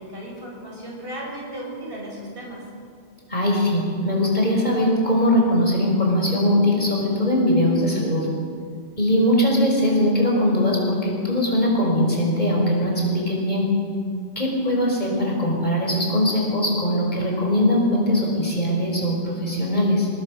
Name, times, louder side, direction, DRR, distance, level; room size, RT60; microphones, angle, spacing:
voice 1, 0.1-2.6, right 1 dB, 55° right, -3 dB, 7.5 m, -35 dB
voice 2, 3.3-8.3 9.0-13.7 14.4-20.1, left 1 dB, 40° left, -2 dB, 5.9 m, -21 dB
29.0 x 20.5 x 6.7 m, 2.2 s
omnidirectional pair, 1.1 m